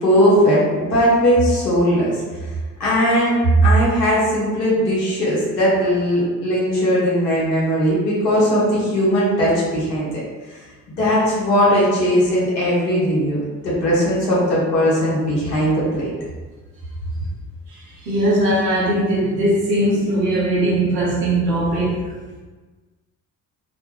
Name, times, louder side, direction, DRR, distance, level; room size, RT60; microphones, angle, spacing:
voice 1, 0.0-2.5 2.8-3.3 3.6-10.1 10.5-10.6 10.9-16.1, equal, 80° left, -7 dB, 0.9 m, -18 dB
voice 2, 17.7-22.1, right 1 dB, 80° right, -5 dB, 0.7 m, -20 dB
2.4 x 2.2 x 3.2 m, 1.3 s
figure-of-eight pair, 40°, 48 cm